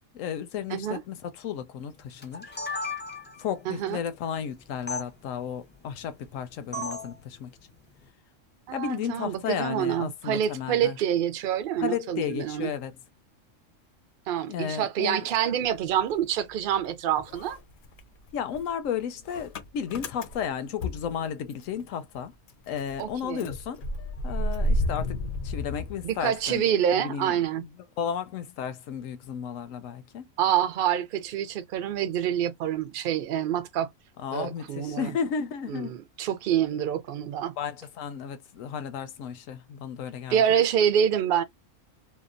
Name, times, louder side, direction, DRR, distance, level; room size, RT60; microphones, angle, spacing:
voice 1, 0.1-2.5 3.4-7.5 8.7-11.0 11.8-13.0 14.5-15.3 18.3-22.3 22.7-23.8 24.2-27.4 28.0-30.3 34.2-36.0 37.6-40.4, left 8 dB, 85° left, 1.0 m, -33 dB
voice 2, 0.7-1.0 3.7-4.0 8.7-12.7 14.3-17.6 23.0-23.5 26.0-27.6 30.4-33.9 34.3-35.1 35.7-37.5 40.3-41.4, right 9 dB, 60° right, 0.6 m, -26 dB
sound 1, 2.2-3.5 4.9-5.0 6.7-7.1, left 2 dB, 15° left, 0.5 m, -34 dB
Motor vehicle (road) / Engine starting, 15.7-16.9 17.2-21.8 22.1-22.2 22.5-26.6, left 1 dB, 55° left, 0.6 m, -32 dB
2.8 x 2.1 x 2.5 m
omnidirectional pair, 1.3 m